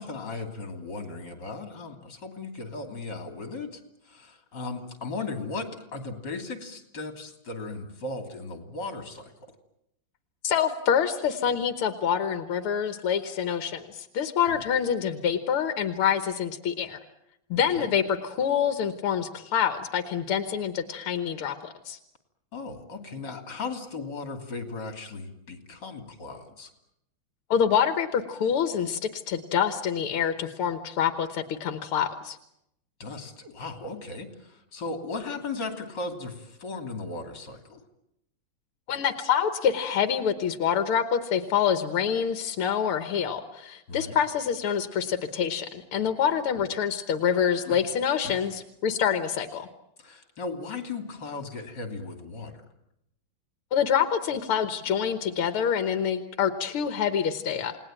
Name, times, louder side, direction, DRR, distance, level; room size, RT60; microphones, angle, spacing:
voice 1, 0.0-9.3 14.5-14.6 17.8-17.9 22.5-26.7 33.0-37.8 43.9-44.2 47.6-47.8 48.2-48.5 50.0-52.6, left 3 dB, 55° left, 6 dB, 3.6 m, -37 dB
voice 2, 10.4-17.0 17.5-22.0 27.5-32.4 38.9-49.7 53.7-57.8, left 8 dB, 90° left, 10 dB, 2.2 m, -26 dB
29.0 x 19.0 x 9.0 m, 0.80 s
omnidirectional pair, 2.3 m